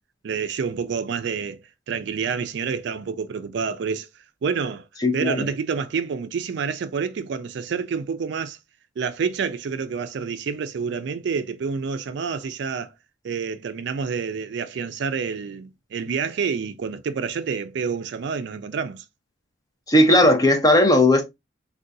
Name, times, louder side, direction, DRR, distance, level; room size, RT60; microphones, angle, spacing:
voice 1, 0.2-1.6 1.9-4.1 4.4-4.8 5.1-8.6 9.0-12.9 13.2-19.0, right 6 dB, 60° right, 0.3 m, -28 dB
voice 2, 5.0-5.4 19.9-21.2, left 1 dB, 20° left, 0.5 m, -16 dB
3.7 x 2.2 x 2.6 m
head